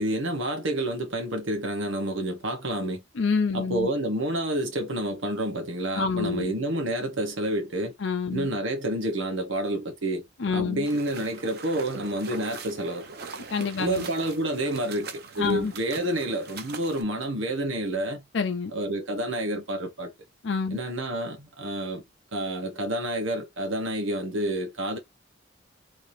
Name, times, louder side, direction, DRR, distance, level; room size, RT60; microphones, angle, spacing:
voice 1, 0.0-3.0 3.5-7.9 8.3-10.2 10.5-13.1 13.8-18.2 18.7-20.1 20.7-22.0 22.3-25.0, right 1 dB, 85° right, 1.3 m, -29 dB
voice 2, 3.2-3.9 5.9-6.5 8.0-8.5 10.4-10.8 13.5-14.1 15.4-15.7 18.3-18.7 20.4-20.8, left 5 dB, 65° left, 0.5 m, -27 dB
sound 1, 10.8-17.0, right 4 dB, 55° right, 0.7 m, -41 dB
3.4 x 2.7 x 3.1 m
head